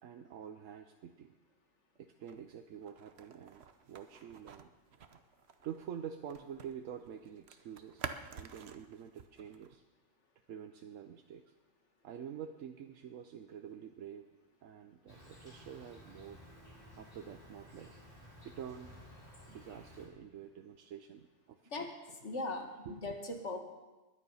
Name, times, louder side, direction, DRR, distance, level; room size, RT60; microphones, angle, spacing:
voice 1, 0.0-1.4 2.0-4.7 5.6-8.1 8.3-9.8 10.5-11.5 12.0-14.3 14.6-16.4 17.0-18.0 18.4-19.0 19.5-21.9 22.9-23.1, right 8 dB, 80° right, 6 dB, 1.1 m, -47 dB
sound 1, 2.2-6.8 7.0-9.8, right 6 dB, 60° right, 1.1 m, -49 dB
Insect, 15.1-20.1, left 1 dB, 45° left, 4.2 m, -55 dB
voice 2, 21.6-23.6, left 2 dB, 65° left, 4 dB, 2.1 m, -40 dB
21.0 x 9.9 x 5.6 m, 1.2 s
omnidirectional pair, 1.3 m